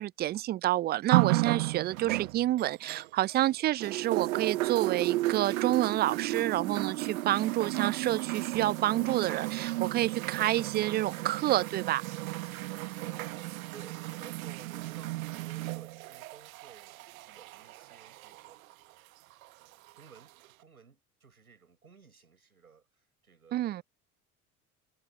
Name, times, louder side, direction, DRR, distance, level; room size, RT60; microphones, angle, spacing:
voice 1, 0.0-12.0 23.5-23.8, right 14 dB, 25° right, 0.3 m, -29 dB
sound 1, 1.1-3.5 3.8-18.5 19.4-19.5, right 18 dB, 70° right, 1.2 m, -33 dB
voice 2, 12.5-18.8 19.7-23.8, right 6 dB, 85° right, 6.7 m, -56 dB
figure-of-eight pair, 60°, 43 cm